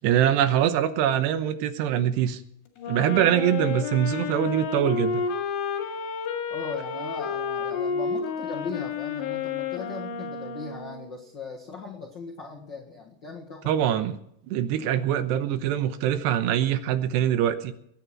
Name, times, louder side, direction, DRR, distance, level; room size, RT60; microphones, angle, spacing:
voice 1, 0.0-2.4 2.9-5.2 13.7-14.2 14.5-17.7, right 10 dB, 85° right, 10 dB, 3.1 m, -23 dB
Wind instrument woodwind instrument, 2.8-11.2, left 6 dB, 85° left, 4.2 m, -31 dB
voice 2, 6.5-14.0, left 4 dB, 60° left, 0 dB, 1.1 m, -39 dB
21.0 x 9.4 x 5.9 m, 0.71 s
omnidirectional pair, 4.9 m